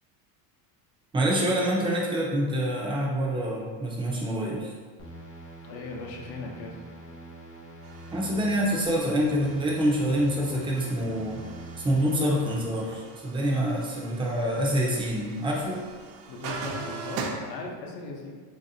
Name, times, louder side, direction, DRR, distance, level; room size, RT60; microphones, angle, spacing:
voice 1, 1.1-4.7 8.1-11.4 11.8-15.8, equal, 10° right, -3 dB, 0.3 m, -26 dB
sound 1, 5.0-12.7, right 2 dB, 30° left, 0.6 m, -44 dB
voice 2, 5.6-6.8 16.3-18.4, left 3 dB, 80° left, 0 dB, 0.7 m, -38 dB
sound 2, 7.8-17.3, right 5 dB, 70° right, 0.6 m, -42 dB
3.2 x 2.7 x 2.6 m, 1.5 s
cardioid pair, 125°, 47 cm